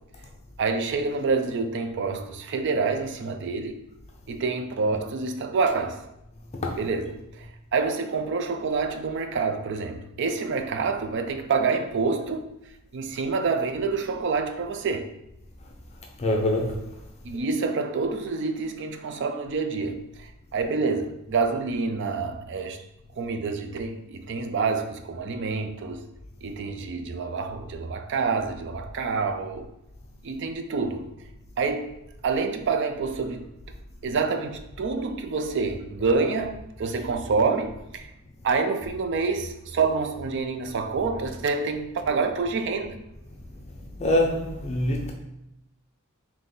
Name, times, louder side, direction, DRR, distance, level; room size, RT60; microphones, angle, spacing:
voice 1, 0.6-3.7 4.3-6.0 6.8-12.5 12.9-15.1 17.2-22.8 23.2-26.0 26.4-29.7 30.2-31.1 31.6-31.9 32.2-33.5 34.0-38.1 38.4-43.0, right 4 dB, 55° right, 0.4 m, -27 dB
voice 2, 16.2-16.9 44.0-45.1, left 1 dB, 30° left, 0.5 m, -24 dB
3.9 x 2.9 x 3.7 m
head